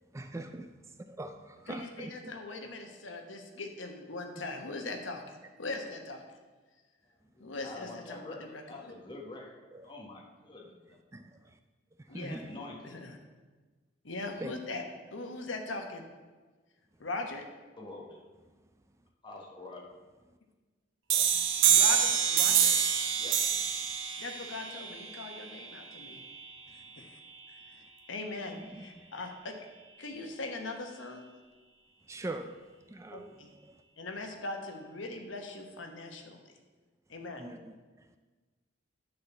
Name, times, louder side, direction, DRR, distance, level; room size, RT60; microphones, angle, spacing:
voice 1, 0.1-0.7 1.1-2.3 9.7-9.9 11.1-11.4 12.1-12.5 14.4-14.5 21.1-21.3 28.6-29.1 32.1-32.6 32.9-33.3 33.6-33.7 37.4-37.7, right 2 dB, 15° right, 0.4 m, -42 dB
voice 2, 1.7-6.4 7.4-8.6 12.1-12.4 12.8-13.2 14.0-14.8 15.1-16.0 17.0-17.4 21.7-22.7 24.2-26.2 26.7-27.2 27.5-27.8 28.1-29.6 30.0-31.3 33.1-33.5 34.0-36.4 37.1-37.5, left 2 dB, 85° left, 1.2 m, -40 dB
voice 3, 7.3-9.6 9.8-11.0 12.1-12.9 17.8-18.2 19.2-19.8 23.1-23.5, left 2 dB, 25° left, 1.5 m, -46 dB
sound 1, 21.1-26.5, right 8 dB, 90° right, 0.9 m, -27 dB
10.5 x 4.2 x 7.1 m
head